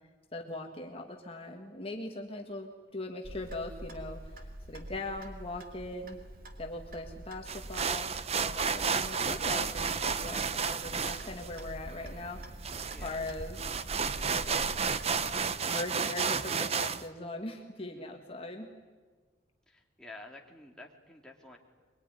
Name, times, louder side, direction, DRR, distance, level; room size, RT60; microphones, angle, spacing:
voice 1, 0.3-6.2 6.6-8.1 8.4-12.6 13.0-13.8 14.3-14.7 15.7-18.7, left 2 dB, 30° left, 2 dB, 1.9 m, -40 dB
Clock, 3.2-15.4, right 1 dB, 50° right, 2.6 m, -46 dB
sound 1, 7.5-17.0, right 5 dB, 35° right, 0.8 m, -32 dB
voice 2, 12.9-13.2 17.8-18.1 19.7-21.6, left 2 dB, 5° left, 0 dB, 2.7 m, -50 dB
23.5 x 23.0 x 9.9 m, 1.4 s
head